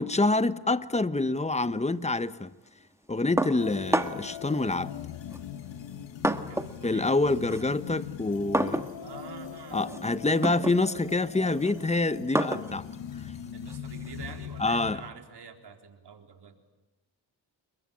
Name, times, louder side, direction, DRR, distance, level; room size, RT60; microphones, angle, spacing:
voice 1, 0.0-2.5 3.1-5.0 6.8-8.9 9.7-12.9 14.6-15.0, left 2 dB, 15° left, 1.1 m, -26 dB
sound 1, 3.4-4.4 5.3-6.8 7.1-14.5, right 1 dB, 5° right, 1.6 m, -32 dB
sound 2, 3.6-15.1, left 9 dB, 90° left, 1.6 m, -41 dB
voice 2, 6.5-7.1 7.5-7.8 9.0-10.0 13.5-16.6, right 6 dB, 65° right, 4.1 m, -47 dB
29.5 x 22.5 x 8.7 m
cardioid pair, 70°, 43 cm